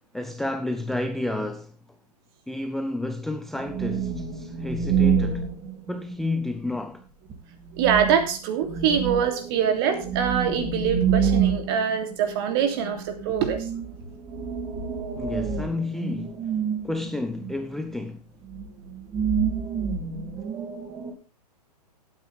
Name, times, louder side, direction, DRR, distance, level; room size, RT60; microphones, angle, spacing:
voice 1, 0.1-1.7 2.5-5.4 5.9-7.0 15.2-16.4 16.8-18.2, left 2 dB, ahead, 0.6 m, -30 dB
sound 1, 3.5-6.4 7.3-7.4 7.7-17.9 18.4-21.1, right 6 dB, 20° right, 2.5 m, -28 dB
voice 2, 7.7-13.7, right 8 dB, 35° right, 3.0 m, -24 dB
16.5 x 9.2 x 3.5 m
figure-of-eight pair, 115°, 21 cm